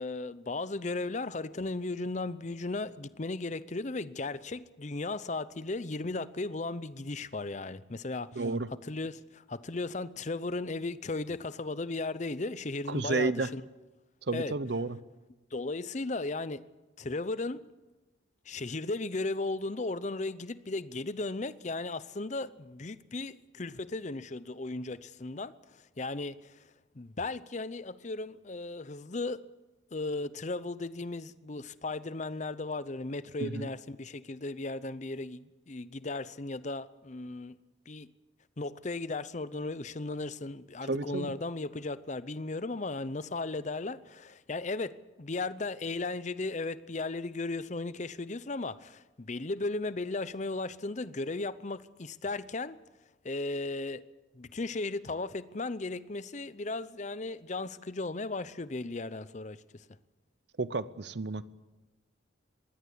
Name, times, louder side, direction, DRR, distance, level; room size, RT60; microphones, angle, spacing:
voice 1, 0.0-8.3 8.9-13.6 14.3-14.5 15.5-16.6 17.0-17.6 18.5-26.6 27.0-29.4 29.9-37.6 37.9-38.1 38.6-52.8 53.2-54.0 54.3-59.8, left 3 dB, 40° left, 0.7 m, -36 dB
voice 2, 8.3-8.7 12.9-13.5 14.2-15.0 33.4-33.7 40.9-41.3 60.6-61.4, right 3 dB, 60° right, 0.8 m, -31 dB
22.0 x 16.5 x 8.4 m
head